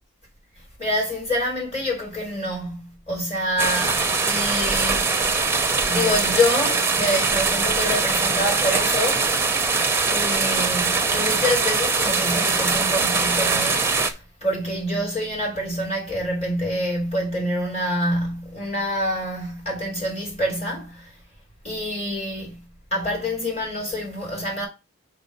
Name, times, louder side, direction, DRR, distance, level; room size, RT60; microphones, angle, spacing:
voice 1, 0.8-5.2 5.9-9.3 10.1-21.1 21.6-22.6 22.9-24.7, equal, 30° left, 4.0 m, -26 dB
sound 1, 3.6-14.1, right 4 dB, 10° right, 0.6 m, -22 dB
5.2 x 4.5 x 5.2 m
head